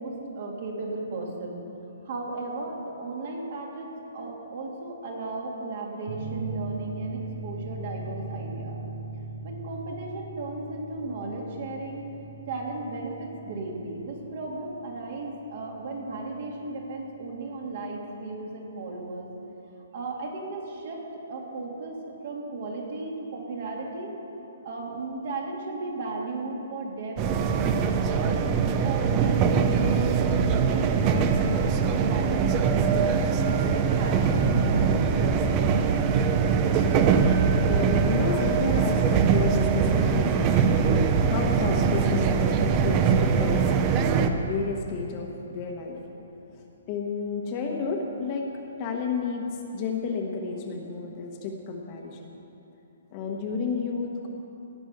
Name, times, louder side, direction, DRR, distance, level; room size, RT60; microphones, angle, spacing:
voice 1, 0.0-1.6 2.0-8.8 9.4-12.1 12.5-19.3 19.9-21.0 21.3-24.1 24.6-28.3 28.8-35.4, right 2 dB, 45° right, 0 dB, 2.4 m, -35 dB
sound 1, 6.1-17.3, right 3 dB, 80° right, 2.3 m, -39 dB
sound 2, 27.2-44.3, right 6 dB, 20° right, 0.6 m, -22 dB
voice 2, 37.3-46.2 46.5-48.5 48.8-52.3 53.1-54.3, left 4 dB, 25° left, 1 dB, 1.1 m, -32 dB
17.0 x 6.0 x 8.1 m, 2.9 s
hypercardioid pair, 170°, 0 cm